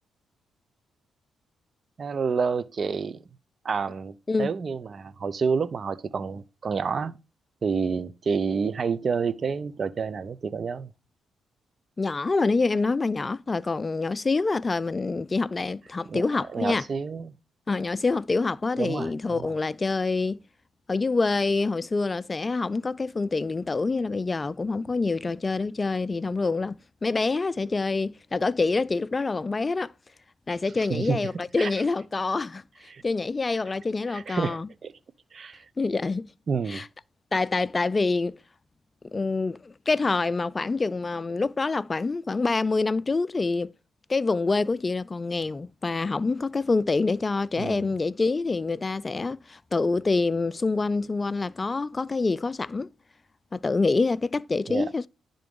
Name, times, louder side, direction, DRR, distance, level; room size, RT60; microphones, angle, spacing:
voice 1, 2.0-3.2 3.6-7.2 7.6-10.9 16.1-16.2 16.5-17.3 18.8-19.5 30.9-31.7 32.9-33.0 34.1-34.9 35.3-35.6 36.5-36.8 47.6-47.9 54.7-54.9, right 5 dB, 50° right, 0.6 m, -29 dB
voice 2, 12.0-16.8 17.7-20.4 20.9-29.9 30.5-32.6 33.0-34.7 35.8-36.3 36.7-36.9 37.3-38.4 39.1-43.7 44.1-52.9 53.5-55.1, left 3 dB, 30° left, 0.4 m, -26 dB
10.5 x 3.8 x 5.3 m
supercardioid pair, 60°, 0 cm